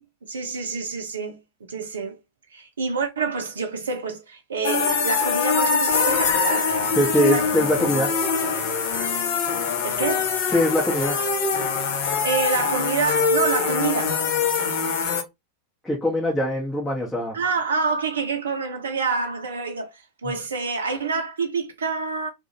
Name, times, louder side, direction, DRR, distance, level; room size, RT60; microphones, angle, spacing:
voice 1, 0.3-1.4 1.7-2.2 2.5-6.7 7.3-7.4 7.8-8.0 9.8-10.4 12.2-14.2 17.3-22.3, right 5 dB, 70° right, 0.5 m, -27 dB
sound 1, 4.6-15.2, left 5 dB, 50° left, 0.6 m, -23 dB
voice 2, 6.9-8.1 10.5-11.2 15.8-17.4 20.2-20.3, equal, 5° left, 0.8 m, -22 dB
2.4 x 2.1 x 2.8 m
figure-of-eight pair, 90°, 0 cm